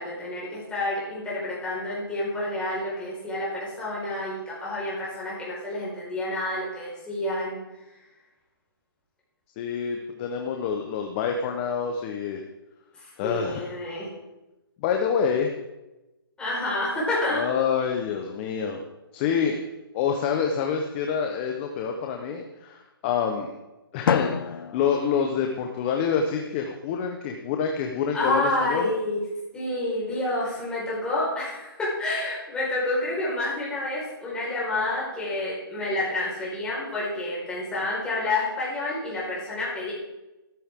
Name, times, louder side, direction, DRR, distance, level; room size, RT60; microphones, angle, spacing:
voice 1, 0.0-7.6 13.0-14.1 16.4-17.5 28.1-29.2 29.5-39.9, left 2 dB, 10° left, -7 dB, 4.9 m, -29 dB
voice 2, 9.6-12.4 13.2-13.7 14.8-15.5 17.3-18.8 19.1-19.6 19.9-23.5 23.9-28.9, left 6 dB, 30° left, 3 dB, 1.1 m, -27 dB
Drum, 24.1-26.0, left 7 dB, 65° left, 0.6 m, -29 dB
14.0 x 13.5 x 3.7 m, 1.0 s
hypercardioid pair, 155°, 12 cm